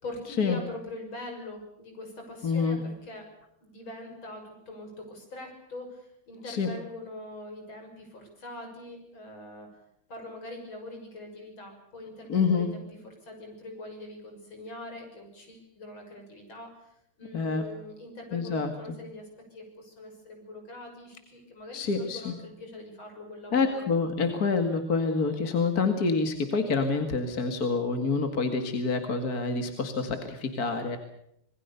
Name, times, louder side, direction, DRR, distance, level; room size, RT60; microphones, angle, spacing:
voice 1, 0.0-3.2 3.6-9.7 10.1-12.8 13.2-23.8, left 2 dB, 65° left, 3 dB, 7.1 m, -43 dB
voice 2, 2.4-2.8 6.4-6.7 12.3-12.7 17.3-17.7 18.3-18.7 21.7-22.3 23.5-31.0, left 4 dB, 45° left, 6 dB, 2.4 m, -27 dB
26.5 x 21.0 x 6.9 m, 0.77 s
omnidirectional pair, 2.4 m